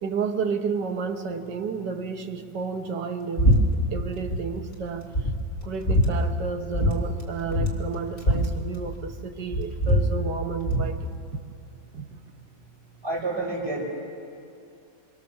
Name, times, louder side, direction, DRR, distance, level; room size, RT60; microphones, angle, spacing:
voice 1, 0.0-5.3 5.6-11.4 11.9-12.1, right 5 dB, 70° right, 5 dB, 1.9 m, -31 dB
sound 1, 3.4-3.6 3.9-4.4 4.8-4.9 5.1-6.1 6.7-6.9 7.2-7.3 7.5-9.2 9.5-10.9, equal, 35° left, 2.6 m, -22 dB
voice 2, 13.0-13.8, right 2 dB, 35° right, -6 dB, 6.5 m, -29 dB
26.5 x 23.5 x 7.2 m, 2.6 s
omnidirectional pair, 1.9 m